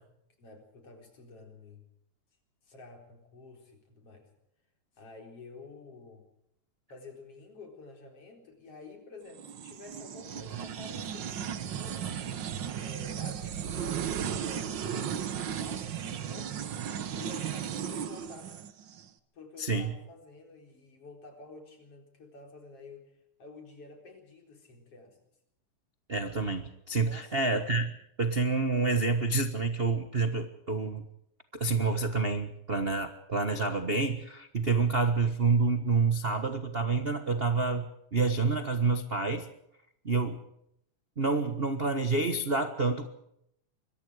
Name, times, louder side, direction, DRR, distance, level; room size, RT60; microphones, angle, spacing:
voice 1, 0.4-1.8 2.6-4.3 5.0-6.2 6.9-12.1 12.8-16.7 17.1-18.5 19.3-23.1 23.4-25.2 27.0-27.4, left 3 dB, 50° left, 3 dB, 5.2 m, -50 dB
sound 1, 9.3-19.0, right 8 dB, 55° right, 1.4 m, -35 dB
voice 2, 19.6-19.9 26.1-27.9 28.2-31.0 31.5-39.4 40.0-40.4 41.2-43.1, right 4 dB, 40° right, 8 dB, 0.8 m, -28 dB
25.0 x 22.5 x 4.9 m, 0.75 s
omnidirectional pair, 3.3 m